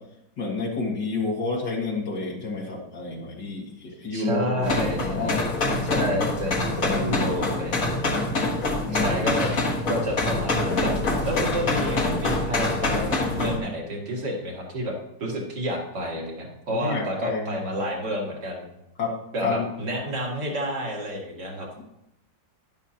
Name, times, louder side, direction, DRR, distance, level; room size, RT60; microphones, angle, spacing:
voice 1, 0.4-5.4 6.0-6.1 6.8-7.2 8.9-9.2 16.7-17.6 19.0-19.1 19.4-19.7 21.8-21.9, left 3 dB, 70° left, -2 dB, 2.5 m, -30 dB
voice 2, 4.1-5.5 5.8-7.9 8.9-9.5 9.9-18.7 19.3-21.7, equal, 65° right, -1 dB, 2.8 m, -30 dB
sound 1, 4.6-13.6, left 2 dB, 50° left, 1.9 m, -25 dB
11.0 x 10.5 x 2.9 m, 0.84 s
omnidirectional pair, 2.0 m